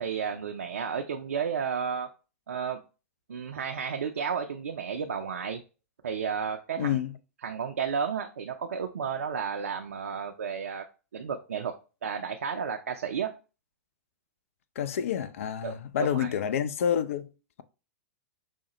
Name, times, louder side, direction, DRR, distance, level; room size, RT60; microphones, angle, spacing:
voice 1, 0.0-2.1 2.5-2.8 3.3-5.6 6.0-7.0 7.4-10.8 11.1-11.7 12.0-13.3 15.6-15.7 16.0-16.3, right 6 dB, 70° right, 0.4 m, -32 dB
voice 2, 6.8-7.1 14.8-17.3, left 9 dB, 60° left, 0.3 m, -28 dB
4.8 x 2.1 x 2.9 m
figure-of-eight pair, 100°, 8 cm